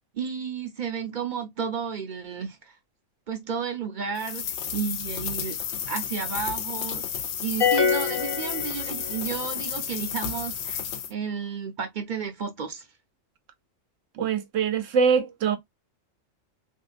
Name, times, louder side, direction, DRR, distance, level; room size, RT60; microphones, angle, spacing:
voice 1, 0.1-2.7 3.3-5.6 5.9-7.0 7.4-10.8 11.1-12.9, right 6 dB, 50° right, 0.7 m, -32 dB
sound 1, 4.2-11.1, left 8 dB, 70° left, 0.9 m, -32 dB
sound 2, 7.6-9.3, left 6 dB, 45° left, 0.3 m, -25 dB
voice 2, 14.2-15.6, right 6 dB, 85° right, 1.1 m, -23 dB
3.5 x 2.8 x 2.4 m
omnidirectional pair, 1.3 m